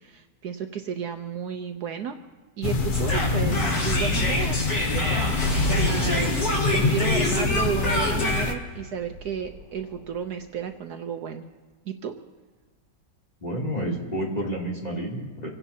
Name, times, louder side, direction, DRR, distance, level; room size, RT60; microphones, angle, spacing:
voice 1, 0.0-2.2 2.6-4.6 4.9-11.4 11.8-12.1, right 7 dB, 65° right, 6 dB, 1.2 m, -33 dB
sound 1, 2.6-8.5, left 4 dB, 50° left, 0.6 m, -26 dB
sound 2, 2.9-10.0, left 1 dB, 70° left, 4.5 m, -27 dB
voice 2, 13.4-15.5, right 1 dB, 20° left, -4 dB, 3.0 m, -30 dB
27.5 x 17.0 x 2.8 m, 1.4 s
omnidirectional pair, 1.9 m